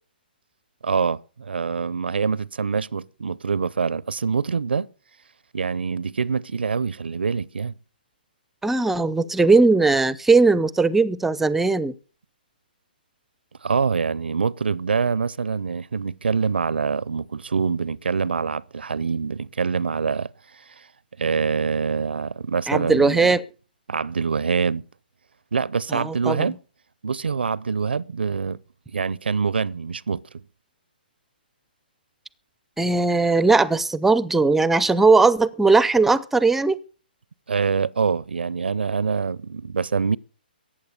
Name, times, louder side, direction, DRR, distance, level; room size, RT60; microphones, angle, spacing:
voice 1, 0.8-4.9 5.5-7.7 13.6-20.9 21.2-23.4 23.9-24.8 25.5-26.6 27.0-28.6 28.9-30.2 37.5-40.2, right 5 dB, 80° right, 0.6 m, -25 dB
voice 2, 8.6-11.9 22.7-23.4 25.9-26.4 32.8-36.8, right 3 dB, 5° right, 0.5 m, -18 dB
14.5 x 8.8 x 6.6 m
hypercardioid pair, 140°, 5 cm